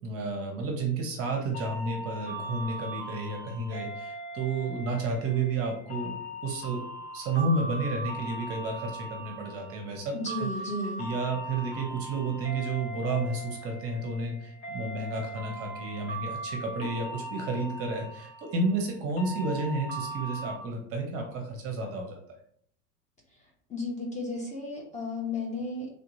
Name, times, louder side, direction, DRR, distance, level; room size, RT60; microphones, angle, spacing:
voice 1, 0.0-6.8 7.1-10.5 11.0-22.2, right 3 dB, 30° right, 2 dB, 0.8 m, -31 dB
sound 1, 1.5-20.6, right 1 dB, 45° left, 1.5 m, -39 dB
voice 2, 10.1-11.1 23.7-25.9, left 2 dB, 15° left, -2 dB, 0.8 m, -33 dB
3.4 x 2.7 x 2.7 m, 0.63 s
figure-of-eight pair, 85°, 46 cm